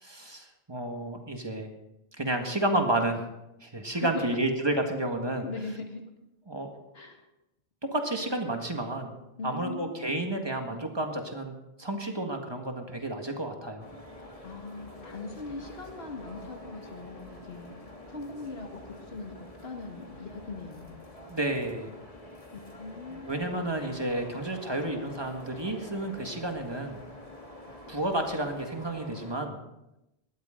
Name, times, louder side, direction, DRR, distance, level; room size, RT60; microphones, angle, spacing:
voice 1, 0.0-1.7 2.2-3.2 3.6-5.4 6.5-6.7 7.8-9.2 9.4-11.5 11.8-13.9 21.3-21.9 23.1-27.0 27.9-29.6, right 1 dB, 25° right, 3 dB, 1.8 m, -31 dB
voice 2, 3.9-4.4 5.4-6.0 6.9-7.2 9.4-10.3 14.4-17.7 18.1-21.1 22.5-23.5, left 3 dB, 80° left, 2 dB, 2.1 m, -40 dB
sound 1, 13.8-29.3, left 1 dB, 35° left, 2.1 m, -47 dB
19.0 x 13.5 x 3.9 m, 0.91 s
omnidirectional pair, 1.0 m